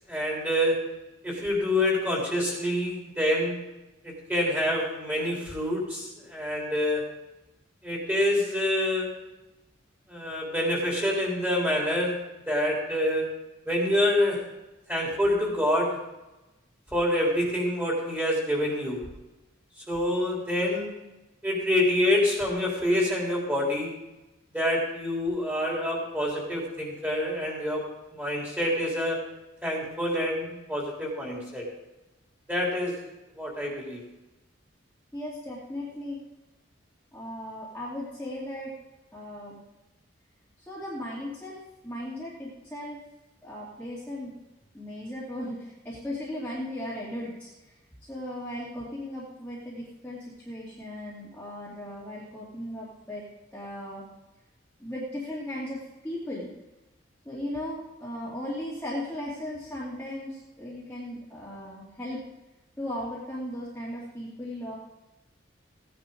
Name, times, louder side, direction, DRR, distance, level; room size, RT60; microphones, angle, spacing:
voice 1, 0.1-0.8 1.2-3.6 4.0-7.0 7.8-9.1 10.1-12.2 12.5-13.3 13.7-14.4 14.9-15.9 16.9-19.0 19.9-20.9 21.4-23.9 24.5-27.8 28.1-29.2 29.6-31.6 32.5-33.0 33.4-34.0, left 1 dB, 10° right, -3 dB, 3.6 m, -26 dB
voice 2, 35.1-36.2 37.1-38.7 39.1-39.6 40.6-43.0 43.4-44.3 44.7-47.7 48.1-53.2 53.5-54.1 54.8-56.5 57.2-62.2 62.8-64.8, left 1 dB, 10° left, -9 dB, 2.5 m, -37 dB
16.0 x 10.0 x 3.9 m, 1.0 s
head